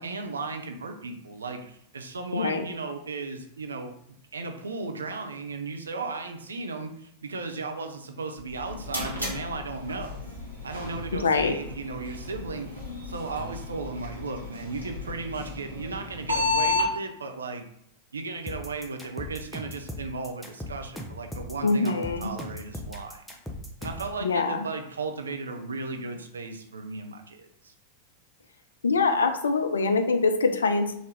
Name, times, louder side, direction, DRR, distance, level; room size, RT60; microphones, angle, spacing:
voice 1, 0.0-3.9 4.3-10.2 10.6-12.7 13.0-17.7 18.1-23.2 23.8-27.7, right 3 dB, 70° right, 5 dB, 0.5 m, -35 dB
voice 2, 2.3-2.7 11.1-11.6 21.6-22.3 24.2-24.6 28.8-31.0, left 4 dB, 70° left, 8 dB, 0.4 m, -24 dB
sound 1, 8.4-16.9, left 3 dB, 90° right, 1.1 m, -33 dB
sound 2, 18.5-24.1, left 1 dB, 5° left, 0.6 m, -38 dB
3.8 x 2.6 x 3.3 m, 0.72 s
figure-of-eight pair, 90°, 0 cm